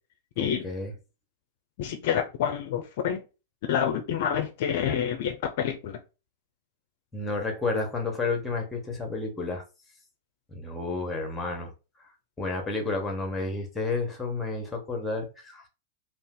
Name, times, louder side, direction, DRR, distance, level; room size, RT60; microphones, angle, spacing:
voice 1, 0.4-0.9 7.1-9.6 10.5-11.7 12.4-15.6, left 3 dB, 10° left, 1.1 m, -31 dB
voice 2, 1.8-3.2 3.7-6.0, left 8 dB, 60° left, 0.4 m, -28 dB
2.5 x 2.4 x 3.6 m
hypercardioid pair, 105°, 0 cm